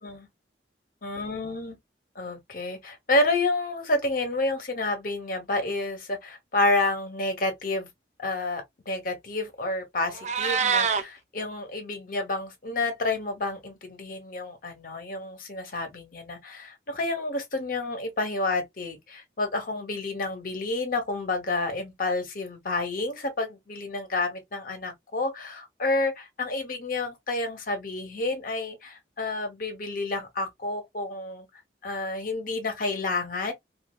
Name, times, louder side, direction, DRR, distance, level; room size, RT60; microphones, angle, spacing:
voice 1, 1.0-1.8 2.2-7.9 8.2-31.5 31.8-33.5, left 2 dB, 50° left, 0.9 m, -29 dB
Meow, 10.0-11.0, right 6 dB, 40° right, 0.4 m, -25 dB
3.2 x 2.4 x 2.3 m
head